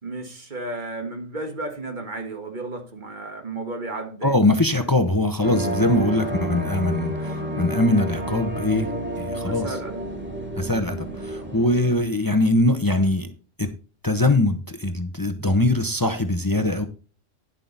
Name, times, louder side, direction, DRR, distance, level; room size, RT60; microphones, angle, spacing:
voice 1, 0.0-4.3 9.4-10.0, right 2 dB, 40° right, 1.8 m, -33 dB
voice 2, 4.2-9.8 10.6-13.3 13.6-13.7 14.0-16.9, left 2 dB, 20° left, 0.7 m, -22 dB
sound 1, 5.4-12.0, right 1 dB, 10° right, 2.3 m, -30 dB
11.0 x 7.5 x 4.0 m
omnidirectional pair, 1.3 m